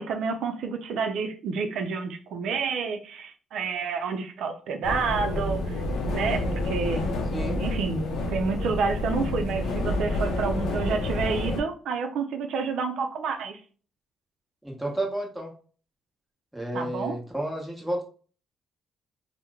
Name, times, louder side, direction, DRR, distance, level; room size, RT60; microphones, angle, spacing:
voice 1, 0.0-5.8 6.1-7.1 7.6-13.6 16.7-17.2, right 5 dB, 75° right, 0.4 m, -29 dB
sound 1, 4.8-11.6, left 1 dB, 80° left, 0.5 m, -29 dB
voice 2, 7.3-7.6 14.6-15.5 16.5-18.0, right 1 dB, 5° right, 1.0 m, -31 dB
2.9 x 2.0 x 3.5 m
cardioid pair, 90°, 0 cm